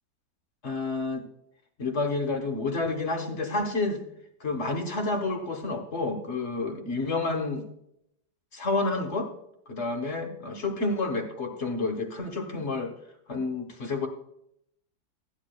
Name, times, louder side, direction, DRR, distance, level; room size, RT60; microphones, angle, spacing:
voice 1, 0.6-1.3 1.8-4.0 4.4-7.6 8.5-9.3 9.7-12.9 13.3-14.1, left 3 dB, 45° left, 4 dB, 1.0 m, -29 dB
12.5 x 9.7 x 2.2 m, 0.76 s
omnidirectional pair, 2.1 m